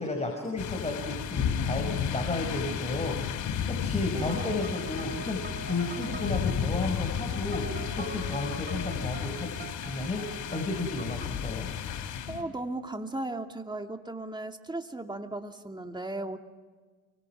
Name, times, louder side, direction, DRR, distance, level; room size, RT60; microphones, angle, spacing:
voice 1, 0.0-11.7, left 2 dB, 20° left, 2 dB, 5.6 m, -33 dB
sound 1, 0.6-12.4, left 8 dB, 85° left, 3.1 m, -33 dB
voice 2, 4.1-4.6 12.3-16.4, right 2 dB, 15° right, 5 dB, 2.6 m, -36 dB
sound 2, 4.3-11.5, right 4 dB, 35° right, 6.9 m, -45 dB
29.0 x 25.0 x 6.1 m, 1.4 s
cardioid pair, 90°, 30 cm